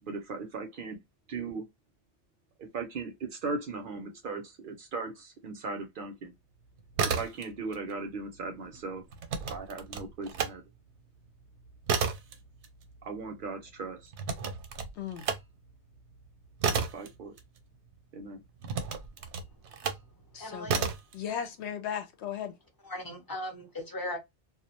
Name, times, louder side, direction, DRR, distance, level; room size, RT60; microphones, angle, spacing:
voice 1, 0.0-1.0 1.3-1.7 2.6-6.3 7.0-9.0 9.5-10.6 13.0-14.1 16.7-17.3 18.1-18.4, right 4 dB, 60° right, 0.6 m, -38 dB
sound 1, 6.8-7.8 8.1-10.6 11.0-18.0 18.6-20.1 20.6-21.1, right 6 dB, 85° right, 0.9 m, -33 dB
voice 2, 15.0-15.3 20.3-20.9 21.1-22.5, left 8 dB, 80° left, 0.9 m, -36 dB
voice 3, 19.6-20.0 20.4-20.8 22.8-24.2, left 1 dB, 25° left, 0.6 m, -38 dB
2.4 x 2.1 x 2.8 m
omnidirectional pair, 1.1 m